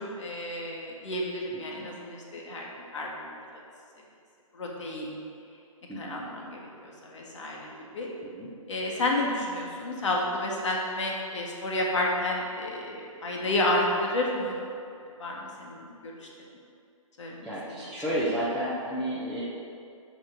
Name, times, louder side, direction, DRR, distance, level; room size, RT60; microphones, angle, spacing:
voice 1, 0.0-2.7 2.9-3.3 4.5-5.1 6.0-7.7 7.9-8.1 8.7-14.6 15.2-16.1 17.2-17.4, left 1 dB, 55° left, -2 dB, 1.8 m, -30 dB
voice 2, 1.5-1.9 5.9-6.2 8.2-8.5 17.4-19.4, equal, ahead, -11 dB, 0.6 m, -32 dB
6.0 x 5.7 x 6.1 m, 2.4 s
hypercardioid pair, 160°, 18 cm